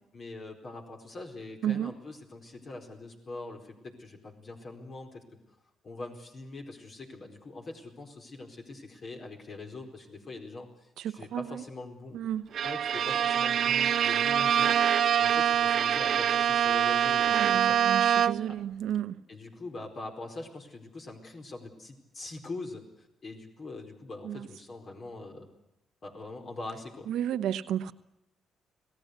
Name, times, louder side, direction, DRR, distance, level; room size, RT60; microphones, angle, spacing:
voice 1, 0.1-5.2 5.8-12.2 12.6-18.1 18.5-18.6 19.3-25.5 26.0-27.1, left 2 dB, 45° left, 4.5 m, -43 dB
voice 2, 11.0-11.4 12.1-12.4 17.3-19.1 24.2-24.4 27.1-27.9, right 10 dB, 80° right, 1.1 m, -32 dB
Bowed string instrument, 12.5-18.6, right 9 dB, 60° right, 0.8 m, -25 dB
27.0 x 18.0 x 8.2 m
cardioid pair, 90°, 0 cm